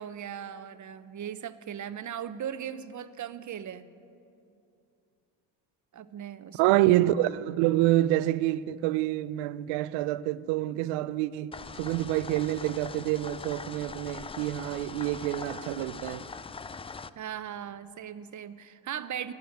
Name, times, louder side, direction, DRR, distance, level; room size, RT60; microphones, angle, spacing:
voice 1, 0.0-3.9 5.9-6.8 17.2-19.3, right 9 dB, 40° right, 0.8 m, -38 dB
voice 2, 6.6-16.3, right 15 dB, 80° right, 0.6 m, -27 dB
sound 1, 11.5-17.1, left 5 dB, 15° left, 0.3 m, -42 dB
12.0 x 9.8 x 9.3 m
supercardioid pair, 60°, 47 cm